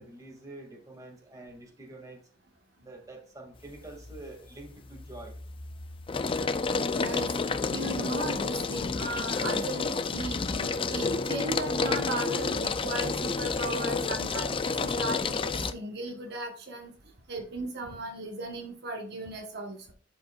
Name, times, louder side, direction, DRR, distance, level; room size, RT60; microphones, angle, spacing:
voice 1, 0.0-2.2 2.8-5.3, right 2 dB, 20° right, 0 dB, 2.3 m, -46 dB
sound 1, 3.7-4.2 4.6-15.7, left 4 dB, 30° left, 0.5 m, -30 dB
voice 2, 6.9-16.9 17.3-19.9, right 2 dB, 60° right, 2 dB, 1.3 m, -36 dB
11.5 x 5.3 x 2.4 m, 0.42 s
head